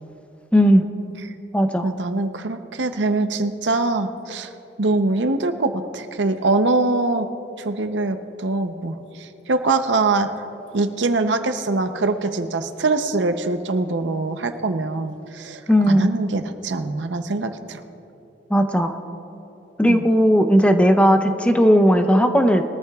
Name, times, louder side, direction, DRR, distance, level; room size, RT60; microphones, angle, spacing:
voice 1, 0.5-0.9 1.5-1.9 15.7-16.1 18.5-19.0 19.8-22.6, equal, 5° left, 6 dB, 0.7 m, -16 dB
voice 2, 1.8-4.5 4.8-7.3 7.6-10.3 10.7-15.6 15.9-17.8 19.9-20.0, right 3 dB, 75° right, 8 dB, 0.7 m, -23 dB
22.0 x 14.0 x 2.4 m, 2.9 s
head